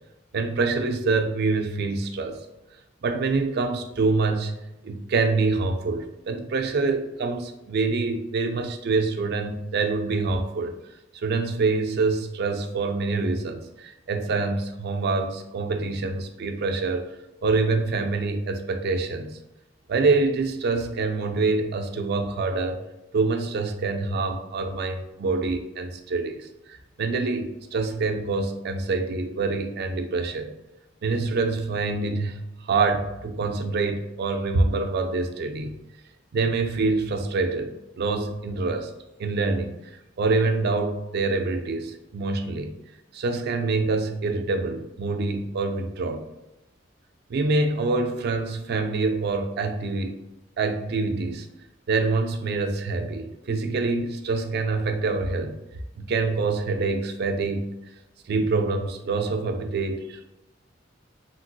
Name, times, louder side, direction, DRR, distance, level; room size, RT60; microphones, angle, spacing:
voice 1, 0.3-2.4 3.0-4.5 4.8-10.7 11.1-17.1 17.4-19.4 19.9-22.8 23.1-30.5 31.0-35.7 36.3-38.9 39.2-39.7 40.2-42.7 43.1-46.2 47.3-50.2 50.6-51.5 51.9-55.6 56.0-57.8 58.3-60.2, right 3 dB, 55° right, 6 dB, 0.4 m, -26 dB
2.9 x 2.8 x 2.8 m, 0.92 s
head